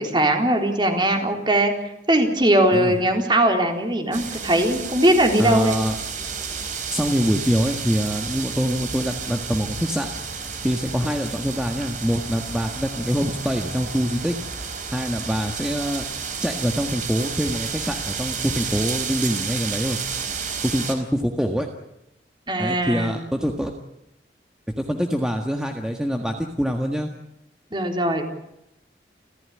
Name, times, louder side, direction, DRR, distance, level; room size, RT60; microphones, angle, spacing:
voice 1, 0.0-1.7 2.1-5.8 22.5-23.2 27.7-28.3, right 1 dB, 25° right, 4 dB, 3.8 m, -20 dB
sound 1, 4.1-21.0, right 6 dB, 45° right, 4.1 m, -31 dB
voice 2, 5.4-5.9 6.9-10.1 10.6-14.3 14.9-16.0 16.4-20.0 20.6-21.7 22.6-23.7 24.8-27.1, equal, 5° right, 3 dB, 1.7 m, -24 dB
30.0 x 15.5 x 9.9 m, 0.85 s
head